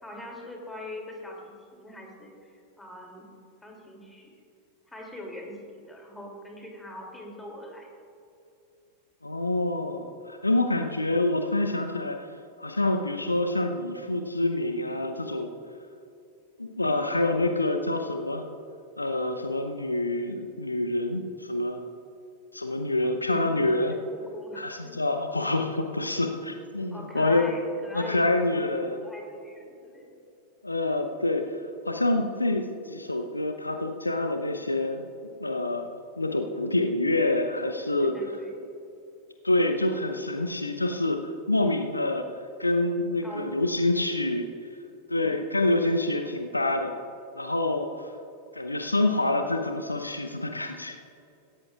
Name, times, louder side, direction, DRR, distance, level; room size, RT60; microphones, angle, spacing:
voice 1, 0.0-3.3 3.6-4.3 4.9-7.9 23.0-24.9 26.9-30.1 38.0-38.6 43.2-43.5, left 1 dB, 10° left, 0 dB, 2.8 m, -42 dB
voice 2, 9.2-12.3 12.6-15.5 16.6-18.4 19.0-21.8 22.5-24.0 24.6-27.5 27.9-29.1 30.6-31.6 31.8-35.1 35.4-38.2 39.4-41.2 41.5-42.3 42.6-44.5 45.1-46.9 47.4-48.1 48.5-51.0, left 2 dB, 85° left, 6 dB, 0.8 m, -27 dB
17.5 x 15.5 x 2.4 m, 2.7 s
figure-of-eight pair, 90°, 0 cm